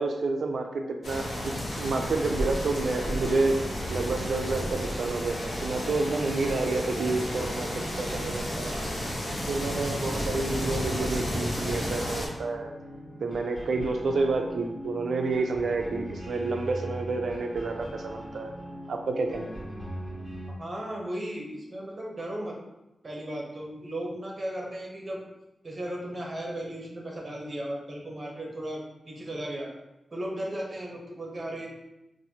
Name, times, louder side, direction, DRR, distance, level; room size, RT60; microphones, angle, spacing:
voice 1, 0.0-1.5 1.8-3.5 3.9-8.8 9.5-12.7 13.2-18.5 18.9-19.5, right 3 dB, 75° right, 4 dB, 0.4 m, -29 dB
sound 1, 1.0-12.3, equal, 55° left, 0.9 m, -32 dB
sound 2, 2.1-20.5, equal, 5° right, 1.0 m, -41 dB
voice 2, 20.6-22.6 23.0-25.2 25.6-29.7 30.1-31.7, right 1 dB, 35° right, -1 dB, 0.8 m, -36 dB
4.1 x 2.5 x 2.8 m, 0.94 s
wide cardioid pair, 140°, 0 cm